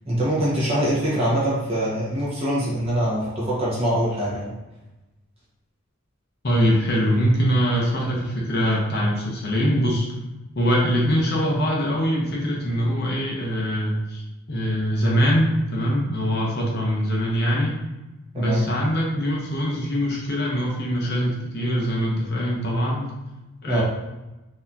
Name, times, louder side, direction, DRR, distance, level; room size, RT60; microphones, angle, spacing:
voice 1, 0.0-4.5 18.3-18.6 23.7-23.8, right 1 dB, 25° right, -7 dB, 1.2 m, -23 dB
voice 2, 6.4-10.1 10.5-14.2 14.5-17.8 18.3-23.1 23.6-23.8, equal, 45° left, -3 dB, 0.7 m, -23 dB
4.1 x 2.9 x 2.7 m, 1.0 s
head